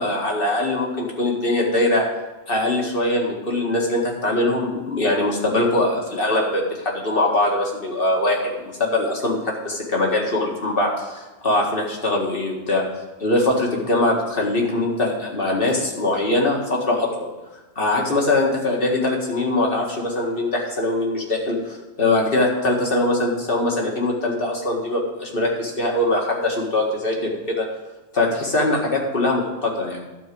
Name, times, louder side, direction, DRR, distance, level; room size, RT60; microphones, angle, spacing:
voice 1, 0.0-2.1 2.5-12.8 13.2-17.3 17.8-27.7 28.1-30.0, left 2 dB, 45° left, -1 dB, 2.1 m, -22 dB
12.5 x 4.6 x 7.7 m, 1.1 s
omnidirectional pair, 1.3 m